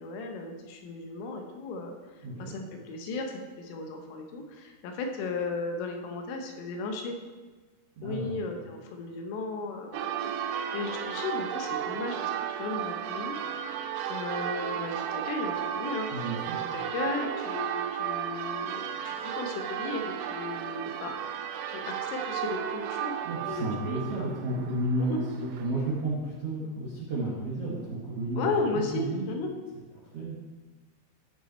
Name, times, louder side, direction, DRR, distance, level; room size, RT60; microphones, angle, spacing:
voice 1, 0.0-1.9 2.4-7.2 8.0-13.4 14.1-16.3 16.5-21.1 21.7-23.1 23.5-24.3 25.0-25.2 26.6-26.7 28.4-29.5, left 3 dB, 90° left, 3 dB, 3.7 m, -35 dB
voice 2, 2.2-2.5 8.0-8.4 16.1-16.6 23.2-28.5 28.7-29.2 30.1-30.4, right 1 dB, 60° right, -8 dB, 1.5 m, -32 dB
Church bell, 9.9-25.7, right 9 dB, 85° right, 3.1 m, -34 dB
15.0 x 5.8 x 4.4 m, 1.3 s
omnidirectional pair, 5.6 m